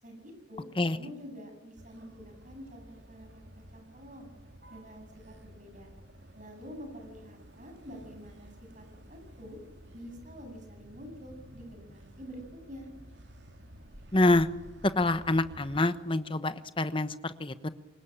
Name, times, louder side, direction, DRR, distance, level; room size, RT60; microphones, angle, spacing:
voice 1, 0.0-0.7 0.9-4.3 4.7-5.9 6.3-9.6 9.9-12.9, equal, 45° right, 4 dB, 7.8 m, -47 dB
Motor vehicle (road), 1.8-15.8, right 1 dB, 70° right, 2.6 m, -52 dB
voice 2, 14.1-14.5 14.8-17.7, left 2 dB, 30° left, 12 dB, 1.1 m, -26 dB
25.0 x 21.0 x 8.8 m, 1.1 s
head